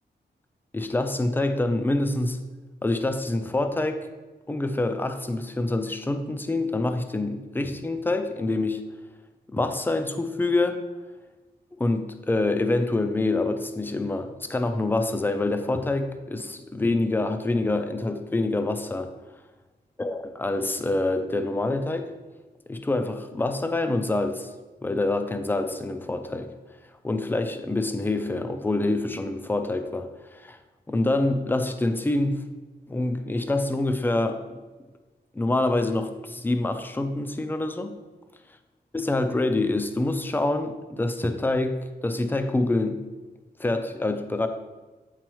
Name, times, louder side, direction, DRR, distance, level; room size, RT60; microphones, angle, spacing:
voice 1, 0.7-2.4 2.8-4.1 4.5-8.8 9.5-10.8 11.8-19.1 20.0-22.1 22.7-24.5 24.8-26.5 27.0-30.6 30.9-32.4 32.9-34.4 35.3-38.0 38.9-43.0 43.6-44.5, left 2 dB, 10° left, 8 dB, 0.4 m, -26 dB
8.9 x 4.1 x 3.0 m, 1.2 s
wide cardioid pair, 165°, 18 cm